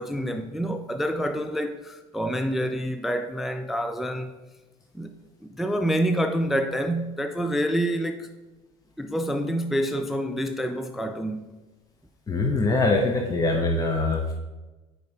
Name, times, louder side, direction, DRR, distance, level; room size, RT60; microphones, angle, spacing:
voice 1, 0.0-4.3 4.9-5.1 5.4-8.3 9.0-11.5, equal, ahead, 0.3 m, -27 dB
voice 2, 12.3-14.3, left 2 dB, 20° left, 0.8 m, -23 dB
5.3 x 4.7 x 4.1 m
hypercardioid pair, 85°, 18 cm